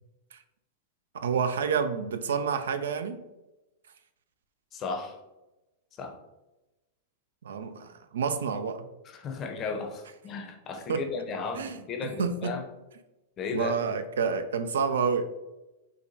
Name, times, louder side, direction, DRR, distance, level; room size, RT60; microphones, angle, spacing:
voice 1, 1.2-3.2 7.4-8.8 10.9-11.0 11.5-11.8 12.2-12.6 13.5-15.3, right 6 dB, 75° right, 9 dB, 0.3 m, -29 dB
voice 2, 4.7-5.1 6.0-6.1 9.0-12.6 13.4-13.8, left 4 dB, 35° left, 4 dB, 0.6 m, -35 dB
4.6 x 2.2 x 2.7 m, 1.0 s
hypercardioid pair, 105°, 0 cm